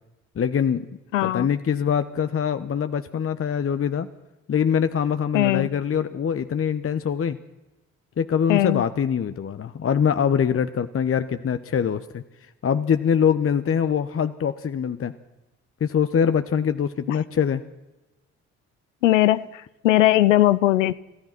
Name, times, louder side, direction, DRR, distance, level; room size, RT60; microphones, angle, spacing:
voice 1, 0.4-0.9 1.2-4.1 4.5-7.4 8.2-12.2 12.6-15.1 15.8-17.6, left 7 dB, 35° left, 11 dB, 1.1 m, -23 dB
voice 2, 1.1-1.5 5.3-5.7 8.5-8.9 17.1-17.2 19.0-20.9, left 15 dB, 80° left, 16 dB, 0.7 m, -19 dB
27.5 x 16.0 x 6.0 m, 1.0 s
figure-of-eight pair, 45°, 38 cm